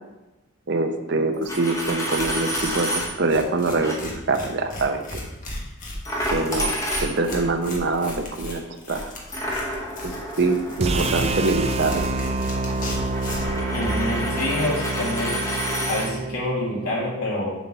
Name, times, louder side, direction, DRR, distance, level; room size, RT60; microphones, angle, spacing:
voice 1, 0.7-5.0 6.3-6.7 7.0-9.1 10.0-12.1, right 3 dB, 55° right, 6 dB, 0.7 m, -24 dB
Coin (dropping), 1.3-3.1 3.8-4.0 6.0-7.5 9.3-16.1, equal, 15° left, 1.1 m, -30 dB
Tearing, 1.4-1.5 1.8-13.6, left 1 dB, 40° left, 1.3 m, -36 dB
sound 1, 10.8-16.9, right 2 dB, 30° right, 0.3 m, -27 dB
voice 2, 13.7-15.4 15.9-17.5, left 1 dB, 85° left, -4 dB, 2.4 m, -27 dB
7.2 x 4.4 x 5.4 m, 1.0 s
head